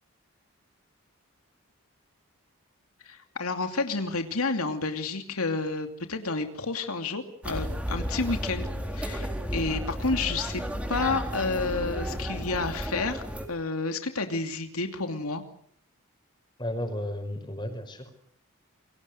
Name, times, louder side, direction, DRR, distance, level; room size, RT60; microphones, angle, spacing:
voice 1, 3.0-10.6 10.9-15.4, left 3 dB, 90° left, 6 dB, 2.8 m, -30 dB
sound 1, 7.4-13.5, equal, 5° right, 3.8 m, -33 dB
voice 2, 16.6-18.2, left 1 dB, 20° left, 7 dB, 5.6 m, -33 dB
29.5 x 24.0 x 6.7 m, 0.64 s
head